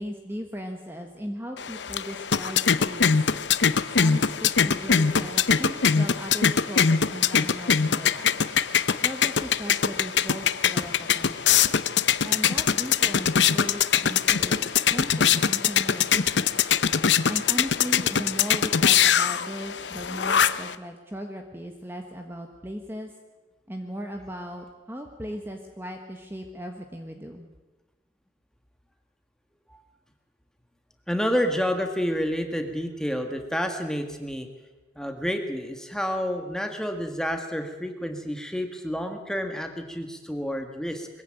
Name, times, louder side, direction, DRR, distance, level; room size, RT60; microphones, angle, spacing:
voice 1, 0.0-3.3 4.0-8.4 9.0-11.6 12.2-14.7 14.9-16.6 17.3-23.1 23.7-27.4, equal, 10° right, 4 dB, 1.4 m, -37 dB
sound 1, 1.6-20.8, left 7 dB, 75° left, 0.8 m, -23 dB
voice 2, 11.6-12.1 29.7-29.8 31.1-34.5 35.0-41.1, equal, 5° left, 5 dB, 1.7 m, -29 dB
21.5 x 15.5 x 9.1 m, 1.2 s
head